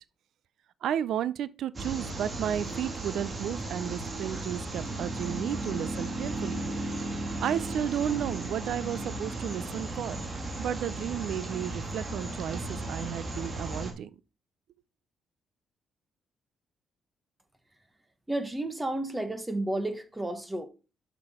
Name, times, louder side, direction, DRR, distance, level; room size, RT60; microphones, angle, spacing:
voice 1, 0.8-6.6 7.4-10.2 10.6-14.1, right 10 dB, 75° right, 0.4 m, -33 dB
sound 1, 1.7-13.9, right 2 dB, 30° right, 2.1 m, -35 dB
voice 2, 18.3-20.7, right 1 dB, 15° right, 1.2 m, -32 dB
6.7 x 6.0 x 4.3 m
cardioid pair, 90°, 0 cm